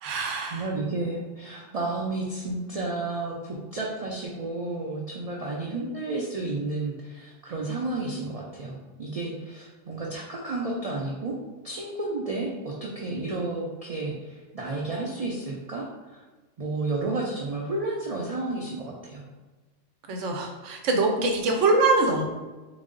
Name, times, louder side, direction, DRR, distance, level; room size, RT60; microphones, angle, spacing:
voice 1, 0.0-0.6 20.1-22.2, right 3 dB, 85° right, 2 dB, 1.0 m, -24 dB
voice 2, 0.5-11.4 11.6-16.2 16.6-19.3, right 2 dB, 65° right, -3 dB, 0.3 m, -32 dB
3.8 x 2.0 x 3.7 m, 1.2 s
omnidirectional pair, 1.2 m